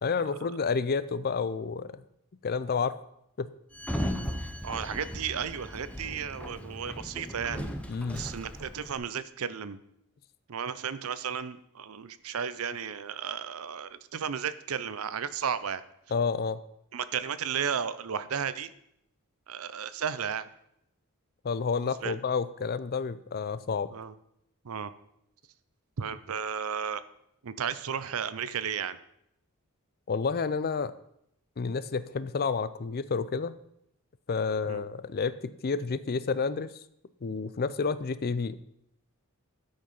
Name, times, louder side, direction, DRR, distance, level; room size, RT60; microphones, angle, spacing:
voice 1, 0.0-2.0 2.4-3.0 3.4-3.5 7.9-8.2 16.1-16.6 21.4-23.9 30.1-30.9 31.6-33.6 34.3-36.7 37.2-38.6, left 5 dB, 45° left, 15 dB, 0.4 m, -30 dB
Sliding door, 3.7-9.0, equal, 5° left, 0.7 m, -37 dB
voice 2, 4.6-7.6 8.1-9.8 10.5-15.8 16.9-18.7 19.5-20.5 21.8-22.2 23.9-24.1 24.6-24.9 26.0-27.0 27.4-29.0 34.6-34.8, right 7 dB, 70° right, 14 dB, 0.6 m, -34 dB
13.0 x 5.3 x 5.5 m, 0.77 s
head